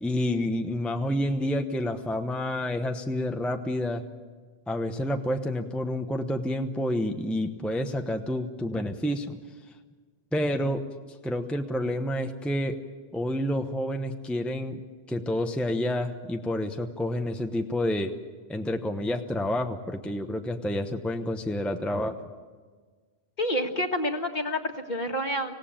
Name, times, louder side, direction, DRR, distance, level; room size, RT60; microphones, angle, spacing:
voice 1, 0.0-4.0 4.7-9.4 10.3-10.8 11.2-12.8 13.1-14.8 15.1-18.1 18.5-22.2, left 1 dB, ahead, 5 dB, 0.9 m, -29 dB
voice 2, 23.4-25.5, equal, 45° left, 4 dB, 1.9 m, -28 dB
25.5 x 17.0 x 8.9 m, 1.5 s
omnidirectional pair, 1.1 m